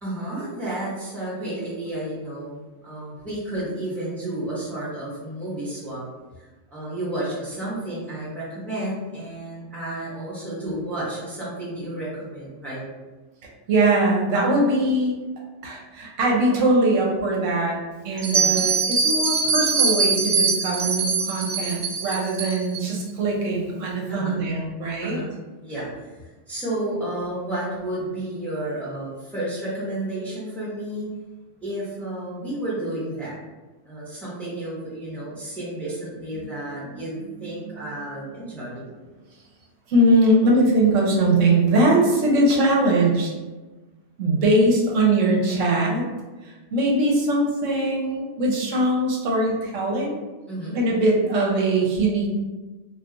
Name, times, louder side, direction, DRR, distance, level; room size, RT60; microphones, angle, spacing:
voice 1, 0.0-6.0 6.4-12.8 18.3-18.6 24.1-24.5 25.0-25.3 25.6-31.1 31.6-33.4 33.9-38.9 50.5-50.8, right 1 dB, ahead, -9 dB, 0.9 m, -31 dB
voice 2, 13.7-15.2 15.6-17.8 18.0-25.2 36.8-37.0 39.9-43.3 44.2-46.0 46.4-50.2 50.7-52.3, right 1 dB, 80° right, -2 dB, 1.0 m, -21 dB
Bell, 18.2-22.8, right 4 dB, 55° right, 0.6 m, -22 dB
2.3 x 2.3 x 3.8 m, 1.2 s
omnidirectional pair, 1.3 m